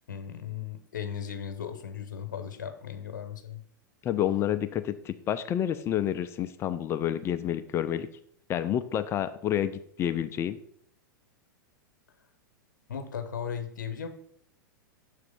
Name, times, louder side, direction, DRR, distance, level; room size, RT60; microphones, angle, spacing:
voice 1, 0.1-3.6 12.9-14.1, left 8 dB, 65° left, 7 dB, 0.9 m, -36 dB
voice 2, 4.0-8.1 8.5-10.6, left 10 dB, 25° left, 11 dB, 0.4 m, -29 dB
7.1 x 3.3 x 5.2 m, 0.66 s
figure-of-eight pair, 95°, 11 cm